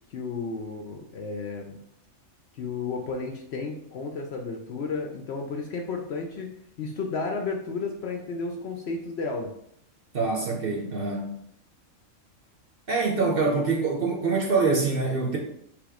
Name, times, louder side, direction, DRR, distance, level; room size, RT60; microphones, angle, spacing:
voice 1, 0.1-1.8 2.5-6.5 6.8-9.5, left 4 dB, 60° left, 2 dB, 0.7 m, -32 dB
voice 2, 10.1-11.4 12.9-15.4, right 4 dB, 50° right, 0 dB, 0.8 m, -25 dB
3.5 x 3.0 x 4.8 m, 0.72 s
omnidirectional pair, 1.4 m